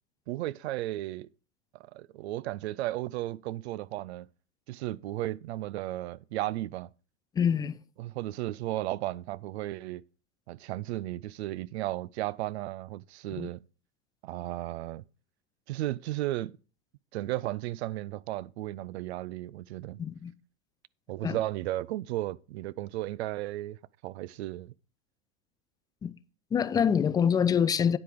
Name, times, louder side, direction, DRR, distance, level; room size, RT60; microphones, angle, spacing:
voice 1, 0.3-1.3 1.7-4.3 4.7-6.9 8.0-10.0 10.5-13.6 14.2-15.0 15.7-16.5 17.1-20.0 21.1-23.8 24.0-24.7, right 15 dB, 80° right, 0.5 m, -34 dB
voice 2, 7.4-7.8 13.4-13.5 20.0-20.3 21.2-21.4 26.0-26.1 26.5-28.0, left 7 dB, 15° left, 0.3 m, -25 dB
9.7 x 4.9 x 5.9 m
hypercardioid pair, 115°, 32 cm